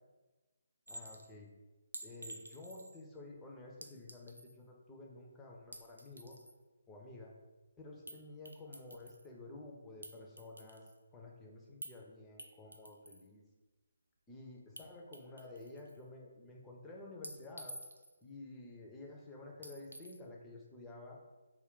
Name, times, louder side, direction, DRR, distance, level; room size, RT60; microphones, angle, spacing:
voice 1, 0.9-1.5 2.0-6.4 6.9-7.3 7.8-10.9 11.1-13.4 14.3-17.8 18.2-21.2, left 2 dB, 10° left, -2 dB, 0.4 m, -51 dB
Chink clink, 0.9-1.3 1.9-3.0 3.8-4.6 5.6-6.6 8.1-8.2 8.5-9.3 10.0-11.0 11.8-12.0 12.4-13.3 14.8-14.9 15.1-16.0 17.2-18.2 19.6-20.2, right 1 dB, 85° right, 0.3 m, -50 dB
2.3 x 2.2 x 3.6 m, 1.2 s
figure-of-eight pair, 145°, 0 cm